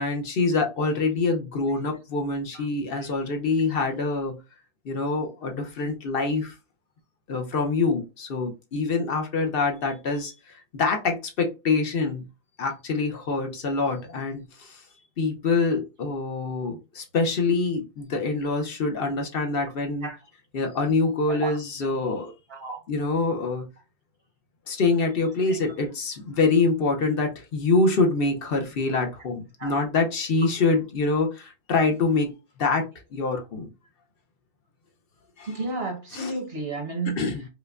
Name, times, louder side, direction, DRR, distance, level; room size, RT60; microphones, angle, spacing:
voice 1, 0.0-4.4 4.8-6.5 7.3-10.3 10.7-12.2 12.6-14.8 15.2-20.1 20.5-22.3 22.9-23.7 24.7-32.3 32.6-33.7 35.4-35.5 36.1-36.3 37.2-37.5, left 3 dB, 60° left, 0.9 m, -25 dB
voice 2, 22.5-22.8 25.5-25.6 29.6-29.7 35.4-37.2, right 3 dB, 70° right, 1.4 m, -32 dB
4.9 x 2.2 x 2.4 m
omnidirectional pair, 1.1 m